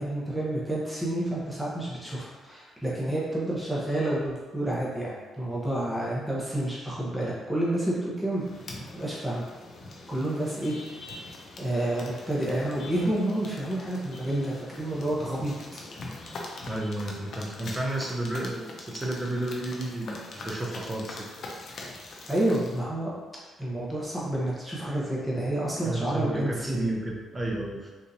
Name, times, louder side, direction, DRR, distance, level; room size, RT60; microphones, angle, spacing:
voice 1, 0.0-8.4 8.9-9.4 10.1-10.8 11.6-15.8 22.3-23.1 23.6-26.9, right 1 dB, ahead, -7 dB, 0.9 m, -29 dB
sound 1, 8.3-22.8, left 2 dB, 55° left, 0.6 m, -43 dB
voice 2, 16.7-21.3 25.8-27.9, right 1 dB, 20° right, -1 dB, 0.6 m, -32 dB
3.7 x 2.8 x 2.7 m, 1.3 s
cardioid pair, 90°, 0 cm